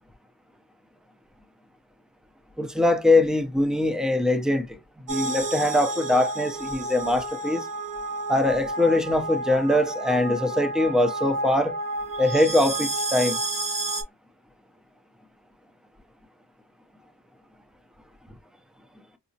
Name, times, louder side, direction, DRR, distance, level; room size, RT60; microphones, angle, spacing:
voice 1, 2.6-4.8 5.1-7.7 8.3-11.8 12.2-13.4, left 1 dB, ahead, 0.6 m, -22 dB
sound 1, 5.1-14.0, right 2 dB, 55° right, 1.1 m, -30 dB
4.7 x 2.0 x 2.7 m
wide cardioid pair, 65°, 37 cm